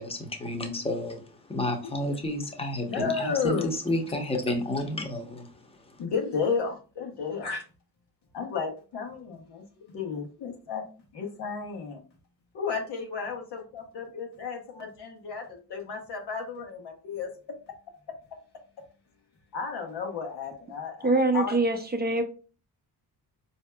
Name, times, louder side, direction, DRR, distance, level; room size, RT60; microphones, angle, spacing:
voice 1, 0.0-6.0, left 1 dB, 15° left, 3 dB, 0.7 m, -31 dB
voice 2, 2.9-3.7 6.0-7.6 8.3-10.9 11.1-12.0 12.5-17.3 19.5-21.6, left 5 dB, 85° left, 2 dB, 1.1 m, -33 dB
voice 3, 21.0-22.2, right 2 dB, 25° right, 4 dB, 0.5 m, -24 dB
4.4 x 2.7 x 2.2 m, 0.36 s
cardioid pair, 120°, 39 cm